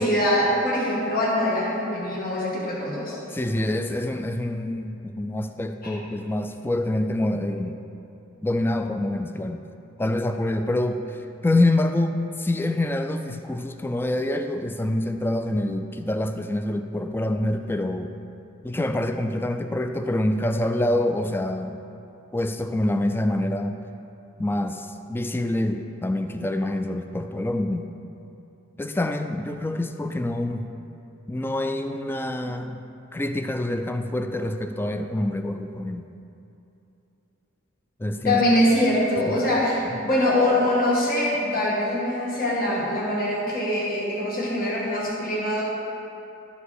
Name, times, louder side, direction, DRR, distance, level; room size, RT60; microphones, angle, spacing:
voice 1, 0.0-3.2 5.8-6.0 38.2-45.6, left 1 dB, 45° left, -5 dB, 1.6 m, -23 dB
voice 2, 3.3-7.8 8.4-9.6 10.0-18.1 18.6-21.8 22.3-23.7 24.4-27.9 28.8-30.7 31.3-32.9 33.1-36.0 38.0-38.4 39.9-40.1, left 1 dB, 10° left, 7 dB, 0.3 m, -26 dB
12.5 x 5.0 x 4.8 m, 2.8 s
head